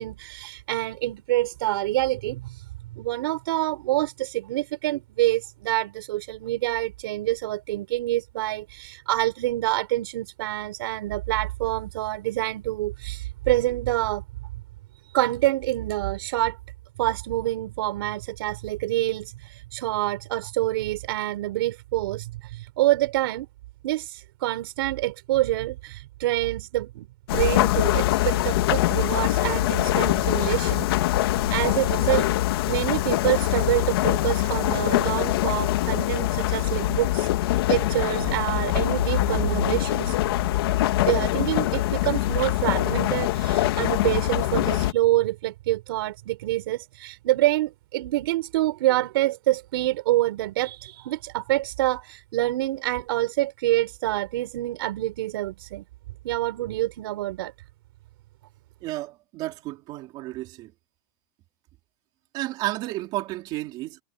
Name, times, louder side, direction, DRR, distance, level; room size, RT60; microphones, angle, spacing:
voice 1, 0.0-2.6 2.9-14.2 15.1-16.6 17.0-23.5 23.8-27.1 27.3-40.2 41.1-55.8 56.2-57.5, right 16 dB, 75° right, 5.0 m, -26 dB
sound 1, 27.3-44.9, left 15 dB, 80° left, 2.1 m, -23 dB
voice 2, 58.8-60.7 62.3-64.0, right 17 dB, 35° right, 3.8 m, -32 dB
supercardioid pair, 175°, 12 cm